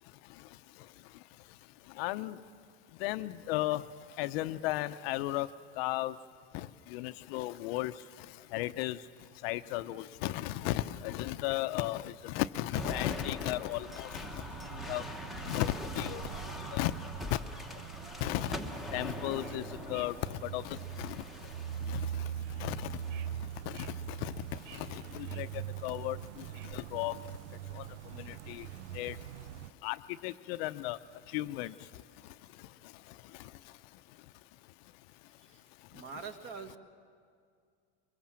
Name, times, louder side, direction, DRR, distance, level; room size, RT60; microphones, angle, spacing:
voice 1, 2.0-2.3 3.0-3.8 4.2-5.5 5.8-6.1 6.9-7.9 8.5-9.0 9.4-14.1 14.9-15.0 15.5-16.2 16.7-16.9 17.3-17.4 18.2-18.5 18.9-19.6 19.9-20.1 20.5-20.6 21.0-21.1 21.9-22.0 22.6-22.8 24.2-24.3 25.4-25.5 25.8-26.2 26.7-27.1 28.5-28.7 29.0-29.1 29.8-30.0 30.2-31.0 31.3-31.7, left 17 dB, 60° left, 12 dB, 0.6 m, -34 dB
sound 1, 12.7-22.1 22.8-23.3 24.4-25.1, left 1 dB, ahead, 0.9 m, -43 dB
sound 2, 14.2-29.7, right 10 dB, 75° right, 0.6 m, -42 dB
voice 2, 35.9-36.8, right 5 dB, 35° right, 8 dB, 1.5 m, -44 dB
23.5 x 22.5 x 7.5 m, 2.2 s
supercardioid pair, 155°, 35 cm